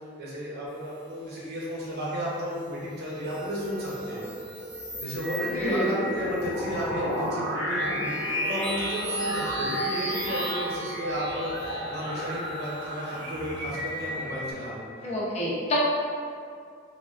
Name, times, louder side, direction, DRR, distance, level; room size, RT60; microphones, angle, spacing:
voice 1, 0.0-4.3 5.0-15.1, equal, 60° right, -6 dB, 0.7 m, -33 dB
sound 1, 3.1-14.5, equal, 25° right, 0.6 m, -36 dB
sound 2, 3.1-14.0, equal, 90° right, 0.8 m, -34 dB
voice 2, 5.5-5.9 15.0-15.8, equal, 35° left, -6 dB, 0.5 m, -27 dB
3.2 x 2.2 x 2.4 m, 2.2 s
head